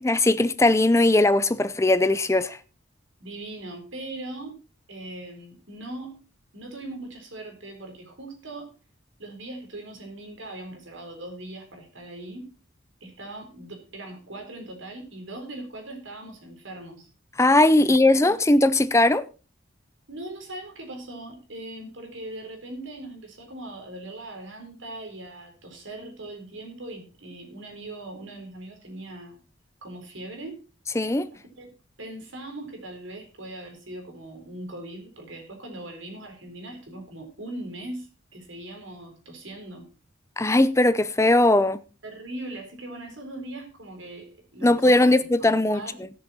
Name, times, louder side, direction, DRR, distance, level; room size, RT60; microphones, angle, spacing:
voice 1, 0.0-2.6 17.4-19.3 31.0-31.3 40.4-41.8 44.6-45.8, left 2 dB, 15° left, 0.5 m, -19 dB
voice 2, 3.2-4.6 4.9-6.2 6.5-8.7 9.2-12.5 13.0-17.1 17.8-18.4 20.1-29.4 29.8-30.6 31.6-31.7 32.0-39.9 42.0-46.1, right 1 dB, 70° right, 4.0 m, -40 dB
17.0 x 7.1 x 4.2 m
head